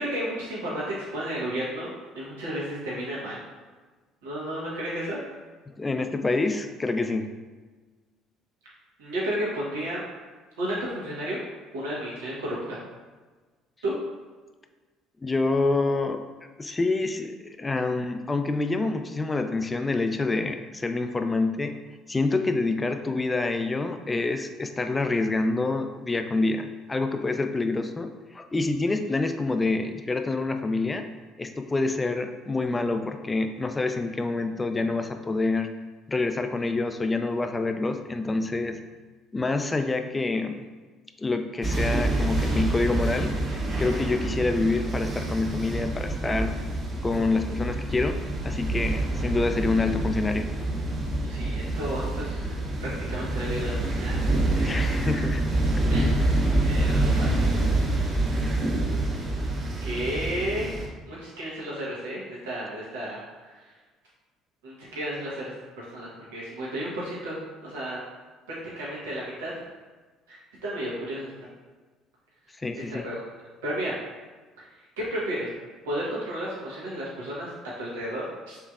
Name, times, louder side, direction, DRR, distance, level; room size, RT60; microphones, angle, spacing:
voice 1, 0.0-3.4 4.2-5.3 9.0-10.0 10.6-11.4 11.7-12.8 13.8-13.9 51.2-52.5 52.8-54.2 55.1-55.2 55.9-57.5 59.8-60.8 61.1-63.7 64.6-68.0 68.5-69.5 70.3-70.4 70.6-71.5 72.7-73.2 73.6-73.9 74.6-74.7 75.0-75.5 75.8-77.5 77.8-78.6, right 1 dB, 85° right, -7 dB, 1.2 m, -33 dB
voice 2, 5.7-7.3 15.2-16.2 16.6-21.7 22.1-31.1 31.4-35.7 36.1-38.8 39.3-40.6 41.2-43.3 43.8-46.5 47.0-48.2 48.4-50.5 54.6-55.4 72.6-73.1, left 3 dB, 20° left, 7 dB, 0.4 m, -27 dB
sound 1, 41.6-60.9, right 2 dB, 50° right, 1.2 m, -27 dB
5.8 x 3.1 x 2.4 m, 1.3 s
hypercardioid pair, 65°, 0 cm